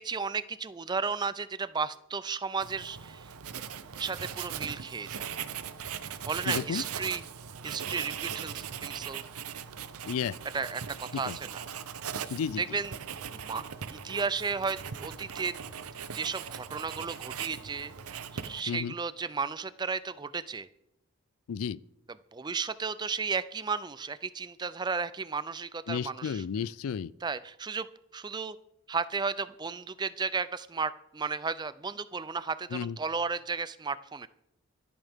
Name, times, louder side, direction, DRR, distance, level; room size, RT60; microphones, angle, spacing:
voice 1, 0.0-3.3 4.0-5.3 6.3-7.2 7.6-9.2 10.5-11.6 12.2-12.3 12.6-13.6 13.9-15.6 16.1-17.9 18.3-20.7 22.3-26.4 27.2-27.9 28.1-28.6 28.9-34.3, right 5 dB, 20° right, 0.4 m, -34 dB
Writing, 2.6-18.8, right 8 dB, 90° right, 0.7 m, -39 dB
voice 2, 6.5-6.8 10.1-10.4 11.1-11.4 12.3-12.6 18.7-18.9 21.5-21.8 25.9-27.1 32.7-33.0, left 7 dB, 80° left, 0.4 m, -32 dB
25.5 x 9.0 x 3.6 m
head